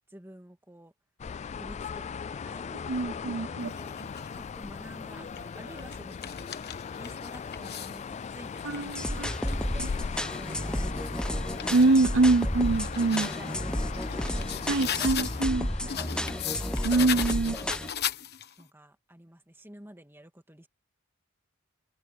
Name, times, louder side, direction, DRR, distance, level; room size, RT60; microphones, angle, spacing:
voice 1, 0.1-0.9 1.5-4.0 4.3-6.3 7.0-10.0 10.4-11.7 13.2-16.5 17.4-17.9 18.6-20.7, right 1 dB, 10° right, 2.6 m, -50 dB
sound 1, 1.2-17.4, left 6 dB, 35° left, 0.3 m, -39 dB
voice 2, 2.9-3.7 8.6-9.3 11.7-13.3 14.7-15.7 16.8-17.6, right 3 dB, 70° right, 0.8 m, -24 dB
sound 2, 3.6-4.4 5.1-8.0 8.5-11.9 12.4-15.5 15.9-18.6, left 9 dB, 55° left, 1.2 m, -38 dB
sound 3, 8.9-17.9, equal, 5° left, 0.9 m, -32 dB
open air
head